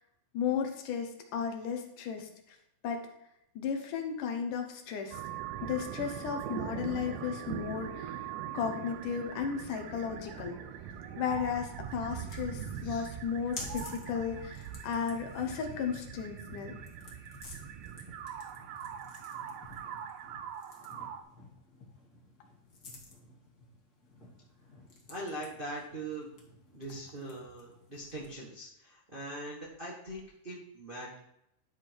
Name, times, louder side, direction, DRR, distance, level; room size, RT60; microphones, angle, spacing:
voice 1, 0.3-2.6 2.8-3.1 3.6-5.2 5.6-8.2 8.5-10.6 11.2-16.8, left 7 dB, 75° left, 4 dB, 2.6 m, -34 dB
sound 1, 5.1-21.2, right 9 dB, 85° right, 2.3 m, -42 dB
sound 2, 11.8-28.5, left 2 dB, 35° left, 1.7 m, -52 dB
voice 2, 25.1-26.3 26.7-31.2, right 1 dB, 45° right, -4 dB, 0.7 m, -42 dB
11.5 x 4.8 x 4.5 m, 0.79 s
omnidirectional pair, 3.8 m